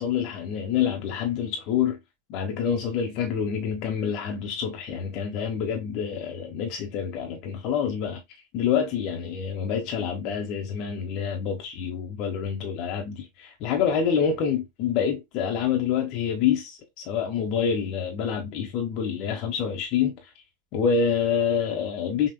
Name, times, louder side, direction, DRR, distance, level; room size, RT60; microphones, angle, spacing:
voice 1, 0.0-2.0 2.3-8.2 8.5-20.3 20.7-22.3, left 7 dB, 40° left, 1.2 m, -27 dB
6.1 x 2.7 x 2.3 m
figure-of-eight pair, 90°, 0 cm